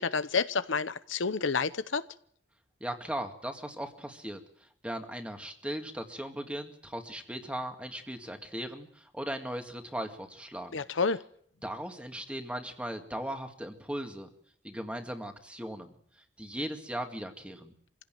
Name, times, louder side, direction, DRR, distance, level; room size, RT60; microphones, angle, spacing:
voice 1, 0.0-2.1 10.7-11.2, left 5 dB, 90° left, 0.9 m, -29 dB
voice 2, 2.8-4.4 4.8-10.8 11.6-14.3 14.6-15.9 16.4-17.7, right 1 dB, 5° right, 2.1 m, -38 dB
25.0 x 16.5 x 9.1 m
head